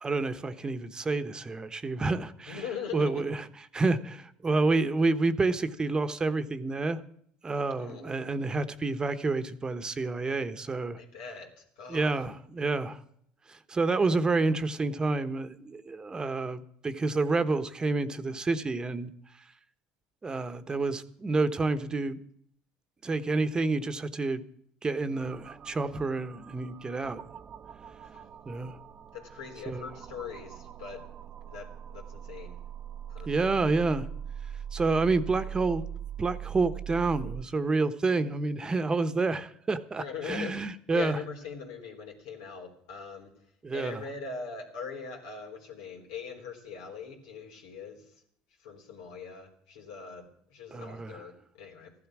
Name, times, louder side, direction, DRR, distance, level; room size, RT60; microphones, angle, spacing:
voice 1, 0.0-2.6 2.9-3.4 3.7-7.0 7.4-11.0 11.9-13.0 13.5-19.1 20.2-22.2 23.0-24.4 24.8-27.2 28.5-28.8 29.7-29.9 33.3-34.1 34.7-35.9 36.2-41.2 43.6-44.0 50.7-51.2, right 3 dB, 25° right, 1.1 m, -29 dB
voice 2, 2.5-3.2 7.8-8.1 10.9-12.2 28.1-28.3 29.1-31.0 31.4-32.6 33.1-33.4 40.0-40.6 40.9-43.3 43.7-48.0 48.6-51.9, left 6 dB, 90° left, 3.7 m, -41 dB
sound 1, 25.2-37.4, right 9 dB, 40° right, 0.7 m, -42 dB
15.0 x 12.0 x 6.1 m
supercardioid pair, 90°, 3 cm